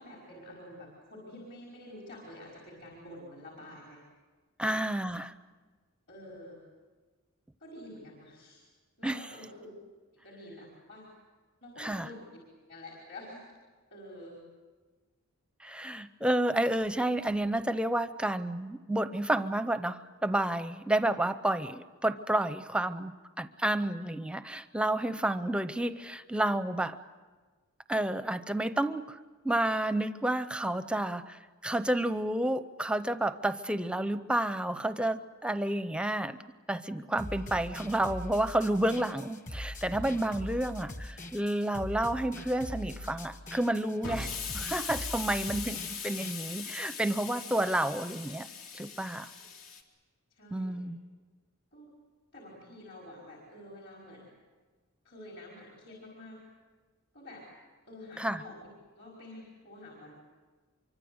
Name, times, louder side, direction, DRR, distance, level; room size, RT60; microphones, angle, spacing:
voice 1, 0.0-4.0 4.6-4.8 6.1-6.6 7.6-8.7 9.0-9.7 10.1-11.1 11.6-12.4 12.7-13.4 13.9-14.4 50.3-50.8 51.7-51.9 52.3-54.3 55.0-56.4 57.1-57.5 57.9-58.7 58.9-60.1, left 1 dB, 55° left, -2 dB, 5.3 m, -48 dB
voice 2, 4.6-5.3 9.0-9.2 11.8-12.1 15.6-27.0 27.9-29.2 29.4-36.4 36.7-48.5 48.7-49.3 50.5-51.0 58.2-58.4, right 1 dB, 5° right, 11 dB, 0.7 m, -30 dB
sound 1, 37.2-46.3, left 1 dB, 35° left, 1.8 m, -42 dB
Explosion, 44.0-49.8, left 6 dB, 70° left, 2.8 m, -40 dB
25.5 x 24.5 x 8.0 m, 1.4 s
head